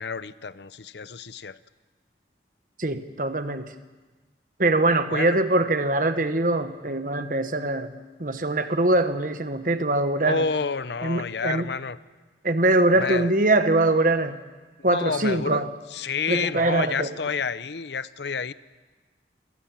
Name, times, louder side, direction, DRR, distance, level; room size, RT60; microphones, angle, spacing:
voice 1, 0.0-1.6 5.1-5.3 10.2-12.0 13.0-13.3 14.9-15.7 15.9-18.5, left 5 dB, 70° left, 16 dB, 0.7 m, -29 dB
voice 2, 2.8-3.7 4.6-7.9 8.2-10.5 11.0-11.7 12.4-14.4 14.8-15.7 16.3-17.1, right 2 dB, 50° right, 9 dB, 1.2 m, -23 dB
27.0 x 18.5 x 7.5 m, 1.3 s
head